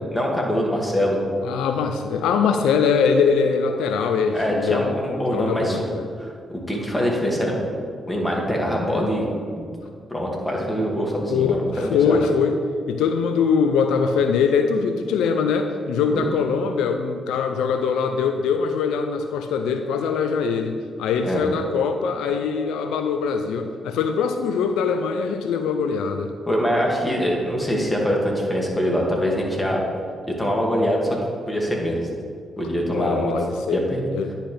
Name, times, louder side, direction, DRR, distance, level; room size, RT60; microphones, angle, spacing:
voice 1, 0.1-1.2 4.3-5.9 6.2-7.6 8.1-9.3 9.6-9.7 10.1-12.2 16.1-16.3 21.2-21.4 26.5-29.8 30.4-31.2 31.5-32.1 32.6-33.3 33.7-34.0, equal, 15° left, -2 dB, 2.1 m, -23 dB
voice 2, 1.4-4.9 5.3-6.1 8.8-9.2 11.3-12.6 12.9-26.3 32.9-33.8 34.1-34.3, left 5 dB, 85° left, 6 dB, 0.3 m, -22 dB
9.9 x 5.6 x 3.3 m, 2.1 s
supercardioid pair, 45°, 0 cm